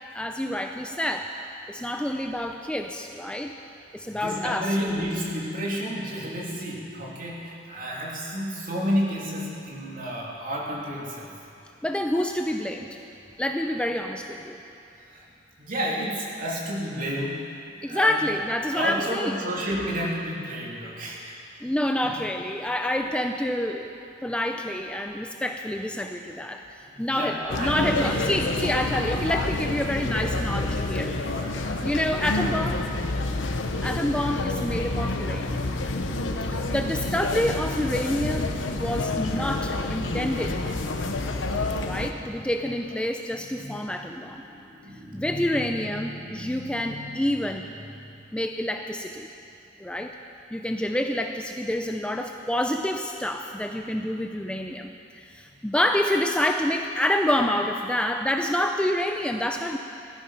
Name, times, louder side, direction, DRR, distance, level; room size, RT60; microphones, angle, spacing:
voice 1, 0.1-1.3 1.7-3.5 3.9-4.7 11.8-13.0 13.4-14.6 17.8-19.3 21.6-23.9 24.2-31.1 31.8-32.9 33.8-35.6 36.4-40.6 41.8-44.4 45.1-47.7 48.3-49.3 49.8-50.2 50.5-59.8, left 1 dB, 5° left, 4 dB, 0.5 m, -28 dB
voice 2, 4.1-11.3 15.1-15.2 15.6-17.5 17.8-18.2 18.7-21.4 22.0-22.1 26.9-28.2 31.2-31.9 36.4-36.7 41.8-42.5 43.4-47.3 47.9-48.1, equal, 45° right, -4 dB, 3.1 m, -32 dB
sound 1, 27.5-42.1, left 2 dB, 80° left, 1.0 m, -28 dB
17.5 x 13.5 x 5.8 m, 2.6 s
head